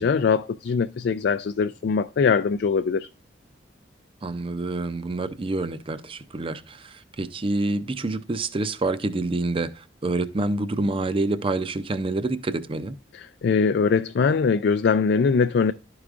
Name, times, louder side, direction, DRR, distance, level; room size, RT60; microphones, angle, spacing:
voice 1, 0.0-3.1 13.1-15.7, left 5 dB, 65° left, 0.4 m, -22 dB
voice 2, 4.2-13.0, right 2 dB, 30° right, 0.5 m, -27 dB
12.0 x 4.8 x 2.5 m
head